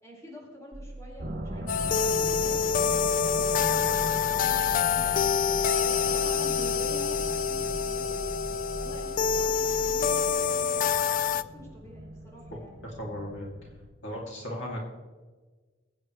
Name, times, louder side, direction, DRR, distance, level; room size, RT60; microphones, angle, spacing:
voice 1, 0.0-8.3 8.8-12.7, left 1 dB, 15° left, -4 dB, 4.6 m, -47 dB
sound 1, 0.7-10.3, right 1 dB, 45° right, 1.5 m, -42 dB
sound 2, 1.2-13.9, right 1 dB, 60° right, 2.3 m, -40 dB
sound 3, 1.7-11.4, left 7 dB, 45° left, 0.4 m, -26 dB
voice 2, 12.8-13.5 14.0-14.9, equal, 80° left, -2 dB, 2.6 m, -36 dB
21.5 x 8.9 x 3.2 m, 1.3 s
head